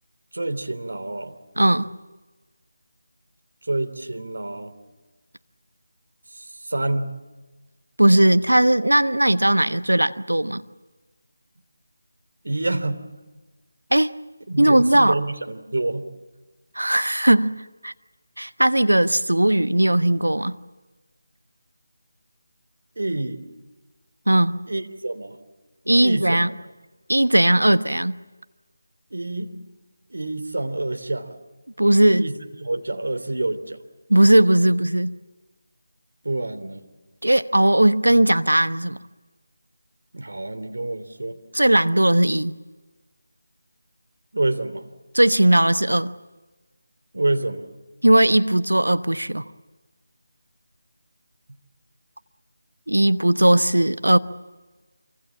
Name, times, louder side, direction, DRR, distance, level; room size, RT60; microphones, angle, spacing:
voice 1, 0.3-1.3 3.7-4.7 6.3-7.1 12.4-13.0 14.5-16.0 23.0-23.5 24.7-25.4 26.0-26.4 29.1-29.6 30.1-31.3 32.1-32.3 32.6-33.8 36.2-36.9 40.1-41.4 44.3-44.8 47.1-47.6, right 2 dB, 70° right, 3.2 m, -27 dB
voice 2, 1.6-1.9 8.0-10.6 13.9-14.1 14.6-15.1 16.7-17.9 18.4-20.6 24.3-24.6 25.9-26.5 27.1-28.1 31.8-32.3 34.1-35.1 37.2-39.0 41.5-42.5 45.1-46.1 48.0-49.4 52.9-54.2, right 1 dB, 90° right, 1.1 m, -18 dB
27.0 x 25.0 x 7.3 m
figure-of-eight pair, 160°, 0 cm